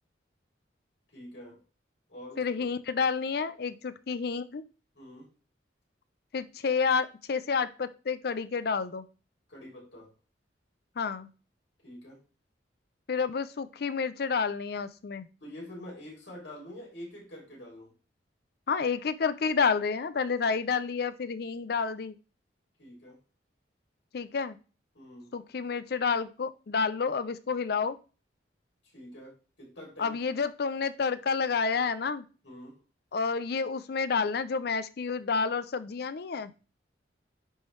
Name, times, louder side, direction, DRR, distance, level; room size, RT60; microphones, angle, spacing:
voice 1, 1.1-1.6 2.1-2.7 4.9-5.3 9.5-10.1 11.8-12.2 15.4-17.9 22.8-23.2 24.9-25.3 28.8-30.2 32.4-32.8, left 1 dB, 85° left, -3 dB, 3.1 m, -46 dB
voice 2, 2.4-4.6 6.3-9.1 11.0-11.3 13.1-15.3 18.7-22.1 24.1-24.6 25.3-28.0 30.0-32.2 33.1-36.5, left 5 dB, 60° left, 13 dB, 0.4 m, -29 dB
9.8 x 3.3 x 3.1 m, 0.35 s
head